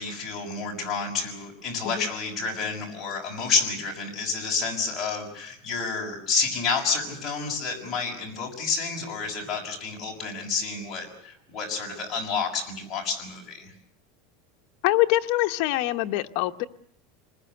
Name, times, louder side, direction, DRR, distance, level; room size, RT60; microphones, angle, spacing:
voice 1, 0.0-13.7, left 5 dB, 15° left, 6.4 m, -29 dB
voice 2, 14.8-16.6, left 17 dB, 45° left, 1.0 m, -24 dB
27.5 x 20.5 x 7.9 m
supercardioid pair, 180°, 0 cm